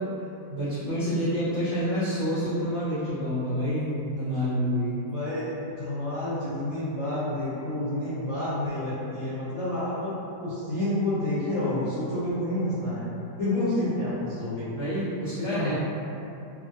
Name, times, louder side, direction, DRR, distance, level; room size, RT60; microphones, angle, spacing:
voice 1, 0.5-5.0 14.7-15.7, equal, 50° right, -14 dB, 0.6 m, -28 dB
voice 2, 5.0-10.1 10.4-13.1 13.4-14.7 15.4-15.7, left 1 dB, 60° left, -13 dB, 0.9 m, -29 dB
2.7 x 2.5 x 2.6 m, 2.8 s
omnidirectional pair, 1.9 m